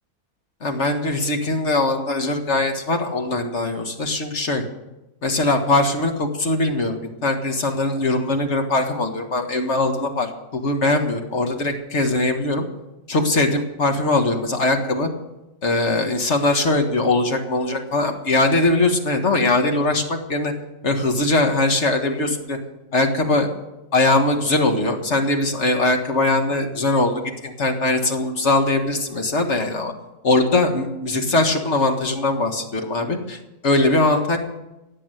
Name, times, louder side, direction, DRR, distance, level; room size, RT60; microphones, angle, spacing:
voice 1, 0.6-4.6 5.2-12.7 13.1-15.1 15.6-20.5 20.8-22.6 22.9-23.5 23.9-29.9 30.2-33.4 33.6-34.4, left 2 dB, 50° left, 4 dB, 1.9 m, -21 dB
17.0 x 7.6 x 9.1 m, 0.96 s
omnidirectional pair, 1.5 m